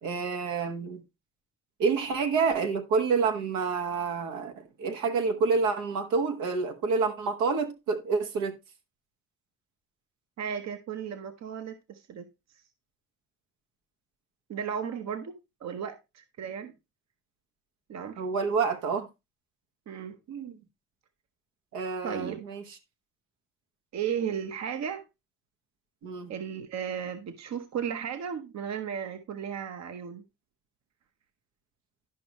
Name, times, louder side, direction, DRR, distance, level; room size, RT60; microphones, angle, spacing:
voice 1, 0.0-1.0 1.8-8.5 18.2-19.1 20.3-20.5 21.7-22.6 26.0-26.3, right 5 dB, 90° right, 1.3 m, -28 dB
voice 2, 10.4-12.2 14.5-16.7 17.9-18.2 19.9-20.2 22.0-22.4 23.9-25.0 26.3-30.2, right 8 dB, 60° right, 1.0 m, -35 dB
11.5 x 5.4 x 3.0 m
cardioid pair, 90°, 30 cm